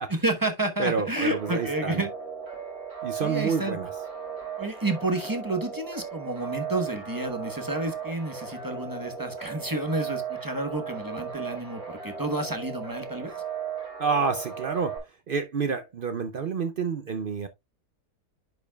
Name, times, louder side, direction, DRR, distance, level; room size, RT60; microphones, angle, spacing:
voice 1, 0.1-2.1 3.2-3.8 4.6-13.4, right 2 dB, 15° right, 0.9 m, -30 dB
voice 2, 0.8-2.0 3.0-3.9 14.0-15.0 15.3-17.5, right 5 dB, 65° right, 0.5 m, -28 dB
sound 1, 1.2-15.0, right 7 dB, 40° right, 3.4 m, -36 dB
10.5 x 5.2 x 2.3 m
omnidirectional pair, 1.7 m